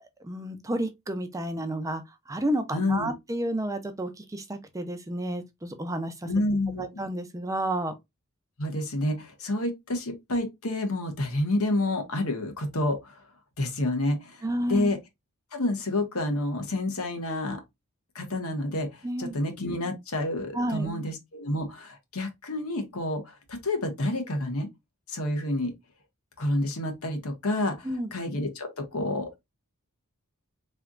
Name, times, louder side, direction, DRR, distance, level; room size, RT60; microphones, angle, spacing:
voice 1, 0.0-6.3 6.8-7.9 14.4-14.9 19.0-19.4 20.5-21.0 27.8-28.1, right 1 dB, 15° right, 0.5 m, -31 dB
voice 2, 2.7-3.1 6.2-6.9 8.6-13.2 13.6-14.4 14.7-15.0 15.5-17.6 18.1-24.7 25.1-25.7 26.4-29.5, left 1 dB, 70° left, 1.2 m, -29 dB
3.9 x 3.3 x 2.3 m
head